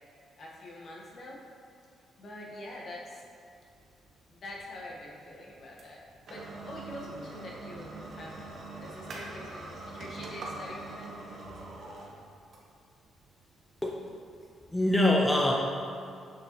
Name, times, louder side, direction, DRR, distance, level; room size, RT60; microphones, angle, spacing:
voice 1, 0.4-1.4 2.2-3.2 4.3-8.4 8.8-11.1, left 1 dB, 55° left, -3 dB, 1.3 m, -45 dB
sound 1, 3.6-14.8, right 2 dB, 60° right, 1.1 m, -44 dB
voice 2, 14.7-15.5, left 1 dB, 10° left, -1 dB, 0.6 m, -24 dB
6.4 x 5.8 x 3.0 m, 2.4 s
cardioid pair, 90°, 0 cm